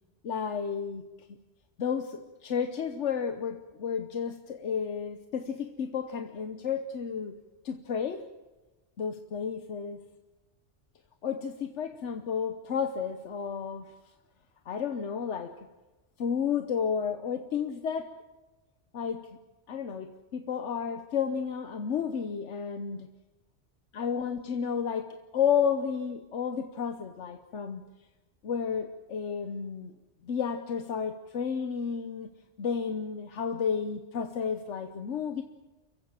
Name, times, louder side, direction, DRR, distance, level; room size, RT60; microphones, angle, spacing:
voice 1, 0.2-1.1 1.8-7.3 7.6-8.2 9.0-10.0 11.2-13.9 14.6-15.6 16.2-18.1 18.9-19.3 19.7-23.1 23.9-27.8 28.4-29.9 30.2-32.3 32.6-35.4, left 7 dB, 85° left, 7 dB, 1.3 m, -32 dB
29.0 x 15.5 x 7.4 m, 1.1 s
omnidirectional pair, 1.2 m